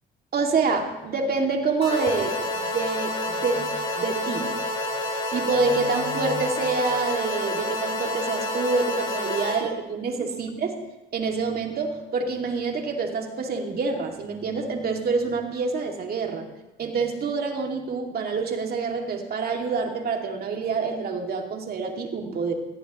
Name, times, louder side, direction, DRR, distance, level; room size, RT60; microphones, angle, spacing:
voice 1, 0.3-3.7 4.0-4.5 5.3-10.7 11.1-16.4 16.8-22.5, right 4 dB, 50° right, 2 dB, 2.5 m, -27 dB
sound 1, 1.8-9.6, left 1 dB, 30° left, 5.4 m, -29 dB
20.5 x 15.0 x 3.1 m, 1.1 s
cardioid pair, 95°, 20 cm